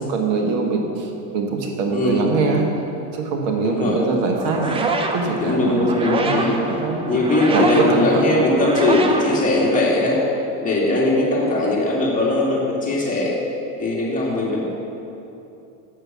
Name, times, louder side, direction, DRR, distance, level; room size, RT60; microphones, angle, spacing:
voice 1, 0.0-2.7 3.1-7.0 7.5-8.2, right 4 dB, 55° right, 2 dB, 1.2 m, -23 dB
voice 2, 1.9-2.2 3.6-4.0 5.4-6.6 7.0-10.2 10.6-13.3 13.8-14.7, left 2 dB, 15° left, -5 dB, 2.2 m, -20 dB
sound 1, 4.3-10.1, right 2 dB, 10° right, 0.5 m, -26 dB
7.9 x 6.7 x 6.1 m, 2.9 s
supercardioid pair, 120°, 47 cm